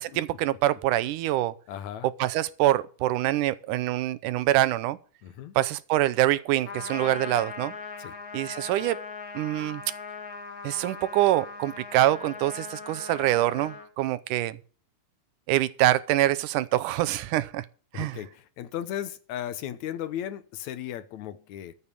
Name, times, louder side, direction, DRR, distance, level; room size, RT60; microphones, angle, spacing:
voice 1, 0.0-1.5 2.2-5.0 5.6-7.7 8.3-9.0 9.4-9.8 10.6-14.6 15.5-17.7 17.9-18.2, right 15 dB, 85° right, 2.2 m, -25 dB
voice 2, 1.7-2.1 5.2-5.5 8.0-8.2 17.9-21.7, left 11 dB, 75° left, 2.1 m, -36 dB
Trumpet, 6.6-13.9, left 5 dB, 35° left, 1.7 m, -40 dB
14.0 x 7.1 x 6.8 m
omnidirectional pair, 3.6 m